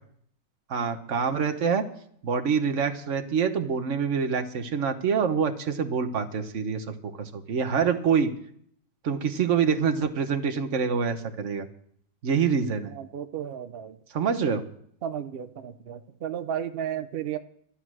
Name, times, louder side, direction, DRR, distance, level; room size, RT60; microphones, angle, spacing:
voice 1, 0.7-1.8 2.2-8.3 9.0-11.7 12.2-12.9 14.1-14.6, right 6 dB, 50° right, 7 dB, 1.2 m, -26 dB
voice 2, 12.9-14.0 15.0-17.4, right 9 dB, 85° right, 10 dB, 0.5 m, -33 dB
11.5 x 11.5 x 6.2 m, 0.65 s
omnidirectional pair, 1.9 m